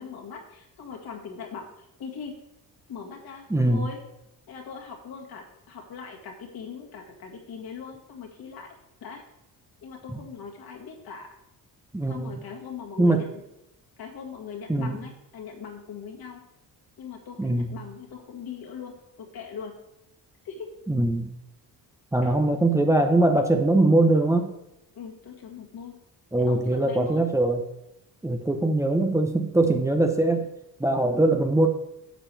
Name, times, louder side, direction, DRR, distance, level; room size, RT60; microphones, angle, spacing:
voice 1, 0.0-1.7 2.0-2.4 2.9-4.0 4.5-8.7 9.0-9.2 9.8-11.3 12.1-13.4 14.0-16.4 17.0-19.7 20.4-20.7 22.2-22.3 24.9-26.0 26.4-27.3, left 6 dB, 65° left, 0 dB, 2.1 m, -40 dB
voice 2, 3.5-3.8 10.1-10.2 11.9-12.4 13.0-13.3 14.7-15.0 17.4-17.7 20.9-21.3 22.1-24.5 26.3-27.6 28.2-30.5 30.8-31.7, right 2 dB, 10° right, 4 dB, 0.8 m, -22 dB
10.0 x 6.8 x 3.4 m, 0.86 s
cardioid pair, 95°, 38 cm